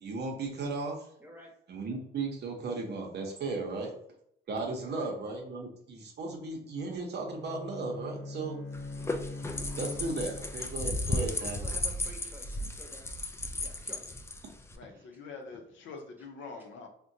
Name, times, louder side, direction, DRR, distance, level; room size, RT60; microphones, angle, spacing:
voice 1, 0.0-1.0 1.7-3.9 4.5-8.6 9.8-11.6, right 3 dB, 55° right, 2 dB, 0.7 m, -35 dB
voice 2, 1.2-1.5 4.8-5.1 11.1-13.0 13.6-14.0 15.1-15.2, right 1 dB, 10° right, 0 dB, 0.9 m, -50 dB
Bowed string instrument, 7.1-10.8, left 2 dB, 45° left, 0.9 m, -42 dB
sound 1, 8.7-14.8, left 2 dB, 15° left, 0.3 m, -35 dB
voice 3, 14.7-16.9, left 4 dB, 75° left, 3 dB, 0.7 m, -45 dB
3.6 x 2.2 x 2.7 m, 0.71 s
cardioid pair, 90°, 20 cm